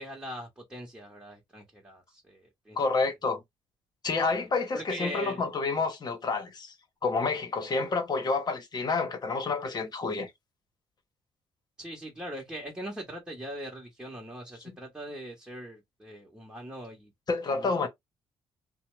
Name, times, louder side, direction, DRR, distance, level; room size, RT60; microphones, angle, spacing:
voice 1, 0.0-3.0 4.3-4.4 4.7-5.5 11.8-17.1 17.5-17.9, equal, 10° right, 1.1 m, -41 dB
voice 2, 2.8-3.4 4.0-6.7 7.0-10.3 14.7-14.8 17.3-17.9, left 4 dB, 45° left, 1.0 m, -29 dB
2.7 x 2.1 x 3.1 m
cardioid pair, 80°, 10 cm